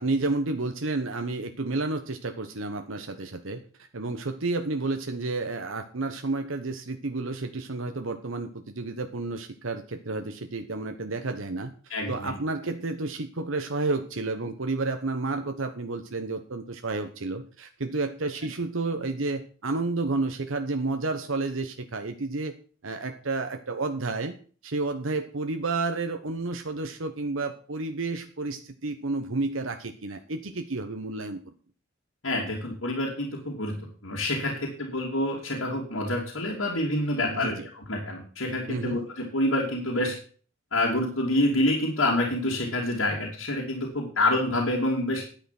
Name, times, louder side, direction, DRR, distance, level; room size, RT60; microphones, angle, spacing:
voice 1, 0.0-22.5 22.8-24.4 24.6-31.5 37.3-37.7 38.7-39.0, right 3 dB, 85° right, 6 dB, 1.1 m, -31 dB
voice 2, 11.9-12.3 32.2-40.1 40.7-45.2, left 1 dB, 90° left, -3 dB, 3.0 m, -27 dB
10.5 x 9.0 x 5.9 m, 0.42 s
head